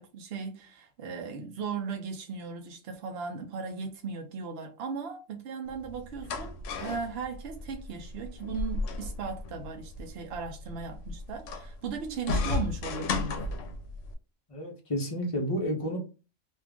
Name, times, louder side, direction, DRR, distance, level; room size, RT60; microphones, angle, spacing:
voice 1, 0.0-13.5, right 5 dB, 65° right, 0.7 m, -37 dB
sound 1, 5.7-14.1, left 3 dB, 80° left, 0.9 m, -35 dB
voice 2, 14.5-16.0, equal, 35° left, 0.7 m, -31 dB
2.6 x 2.4 x 3.4 m
omnidirectional pair, 1.3 m